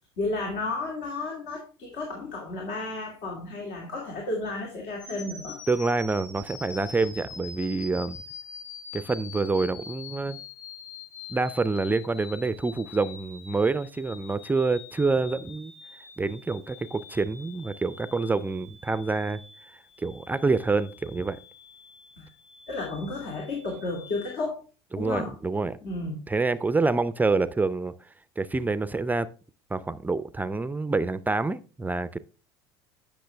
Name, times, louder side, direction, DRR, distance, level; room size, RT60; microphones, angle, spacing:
voice 1, 0.2-5.6 22.2-22.3 22.7-24.6 25.0-25.3 25.8-26.2, left 2 dB, 60° left, 2.5 m, -32 dB
sound 1, 5.0-24.4, left 5 dB, 30° left, 5.0 m, -45 dB
voice 2, 5.7-8.2 8.9-10.4 11.3-15.7 16.2-19.4 20.0-21.4 24.9-25.8 26.3-27.9 28.4-29.3 29.7-32.2, right 3 dB, 15° right, 0.5 m, -27 dB
10.5 x 6.1 x 3.3 m
hypercardioid pair, 85°, 13 cm